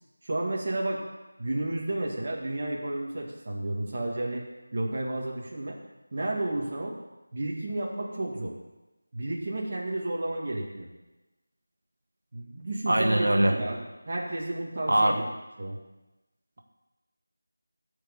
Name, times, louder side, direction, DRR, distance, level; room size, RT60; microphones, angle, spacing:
voice 1, 0.2-1.0 1.4-4.4 4.7-5.8 6.1-7.0 7.3-8.5 9.1-10.9 12.3-15.3 15.6-15.8, right 1 dB, 30° right, -3 dB, 2.0 m, -32 dB
voice 2, 12.9-13.6 14.9-15.2, right 1 dB, 75° right, 3 dB, 1.6 m, -22 dB
14.0 x 5.3 x 7.4 m, 1.1 s
figure-of-eight pair, 175°, 0 cm